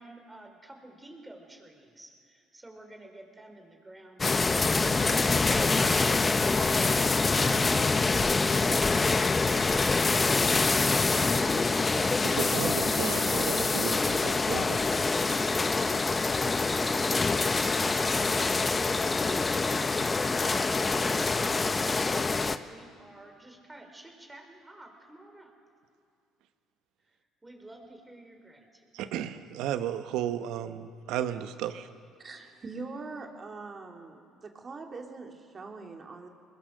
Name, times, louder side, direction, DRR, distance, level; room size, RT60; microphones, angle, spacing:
voice 1, 0.0-8.7 9.8-12.1 22.7-25.5 27.4-28.8, right 1 dB, 15° right, 3 dB, 4.4 m, -50 dB
sound 1, 4.2-22.6, left 3 dB, 25° left, 0.9 m, -25 dB
voice 2, 12.2-14.8 28.9-31.9, right 10 dB, 75° right, 10 dB, 1.1 m, -34 dB
voice 3, 32.2-36.3, right 3 dB, 35° right, 2 dB, 2.8 m, -42 dB
21.5 x 21.5 x 6.6 m, 2.3 s
supercardioid pair, 70°, 0 cm